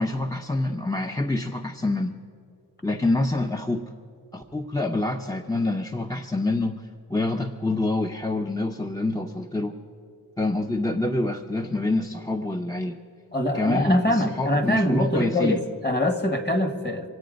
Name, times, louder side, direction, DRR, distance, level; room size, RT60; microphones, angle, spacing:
voice 1, 0.0-2.1 2.8-3.8 4.3-9.7 10.4-13.0 13.5-15.6, left 2 dB, 10° left, 4 dB, 0.6 m, -26 dB
voice 2, 13.3-17.1, left 1 dB, 30° left, 7 dB, 1.5 m, -23 dB
25.0 x 8.6 x 5.2 m, 2.5 s
wide cardioid pair, 70°, 37 cm